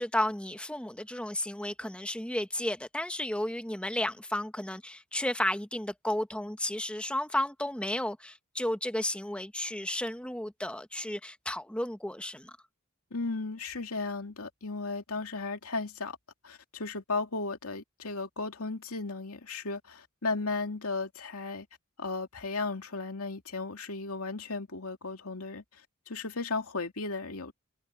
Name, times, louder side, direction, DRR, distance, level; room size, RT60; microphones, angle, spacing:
voice 1, 0.0-12.5, left 1 dB, 5° left, 1.0 m, -33 dB
voice 2, 13.1-16.2 16.4-21.7 22.0-25.6 26.1-27.5, left 3 dB, 75° left, 2.5 m, -35 dB
head